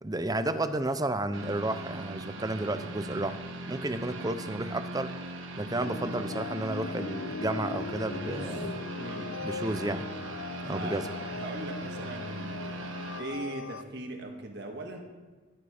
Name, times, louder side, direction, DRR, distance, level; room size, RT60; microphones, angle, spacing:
voice 1, 0.0-3.4 3.7-5.1 5.6-8.8 9.4-10.1 10.6-11.1, right 2 dB, 20° right, 10 dB, 0.7 m, -32 dB
sound 1, 1.3-13.2, right 1 dB, 70° right, 1.4 m, -40 dB
sound 2, 5.8-13.8, left 4 dB, 65° left, 0.6 m, -39 dB
voice 2, 8.1-9.4 10.6-11.0 11.3-15.0, right 2 dB, 55° right, 2 dB, 1.7 m, -40 dB
14.0 x 12.5 x 5.0 m, 1.3 s
head